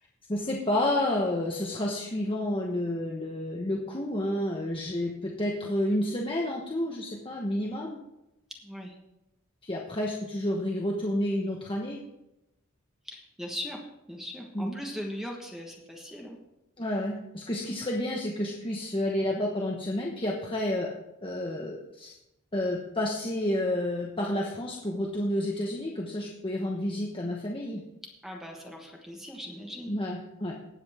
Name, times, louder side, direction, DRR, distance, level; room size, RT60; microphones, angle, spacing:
voice 1, 0.3-8.0 9.6-12.0 14.5-14.8 16.8-20.9 21.2-22.1 22.5-27.8 29.9-30.5, left 1 dB, 25° left, -1 dB, 1.1 m, -30 dB
voice 2, 8.5-9.0 13.0-16.4 28.2-30.0, equal, ahead, 0 dB, 1.3 m, -39 dB
19.5 x 7.9 x 3.6 m, 0.91 s
head